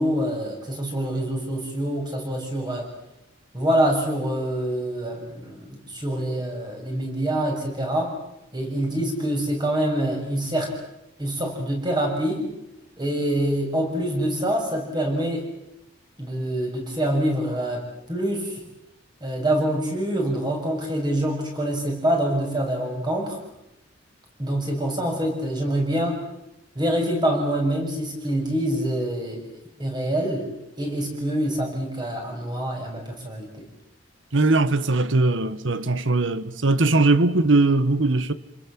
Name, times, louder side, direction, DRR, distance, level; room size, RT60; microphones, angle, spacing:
voice 1, 0.0-2.9 3.5-8.2 8.5-10.7 11.2-12.5 13.0-15.5 16.2-17.8 18.1-18.6 19.2-23.4 24.4-26.3 26.8-29.4 29.8-30.5 30.8-33.6, right 1 dB, 25° right, 6.9 m, -25 dB
voice 2, 34.3-38.3, right 2 dB, 85° right, 1.2 m, -20 dB
29.5 x 21.5 x 7.6 m
head